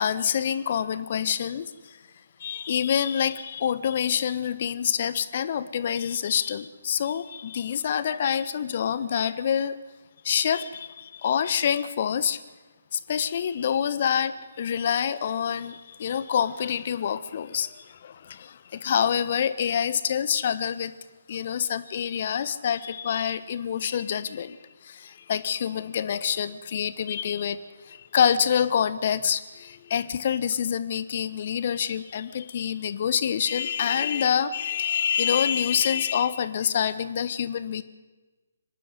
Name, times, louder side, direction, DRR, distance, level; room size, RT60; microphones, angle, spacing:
voice 1, 0.0-2.0 2.4-9.8 10.2-12.4 12.9-21.0 21.3-24.6 24.8-27.6 27.8-37.8, left 8 dB, 40° left, 14 dB, 1.2 m, -26 dB
25.0 x 11.5 x 10.0 m, 1.2 s
figure-of-eight pair, 140°, 0 cm